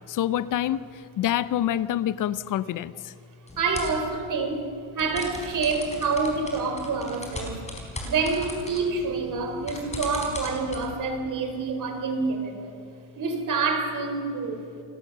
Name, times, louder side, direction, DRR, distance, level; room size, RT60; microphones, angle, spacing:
voice 1, 0.1-0.8 1.2-3.1, left 12 dB, 40° left, 16 dB, 0.7 m, -26 dB
sound 1, 3.5-4.0 5.0-10.8, left 2 dB, 15° left, 4.7 m, -38 dB
voice 2, 3.6-7.6 8.0-12.8 13.2-14.6, right 4 dB, 40° right, 5 dB, 4.1 m, -27 dB
29.0 x 17.5 x 6.7 m, 2.4 s
cardioid pair, 140°, 49 cm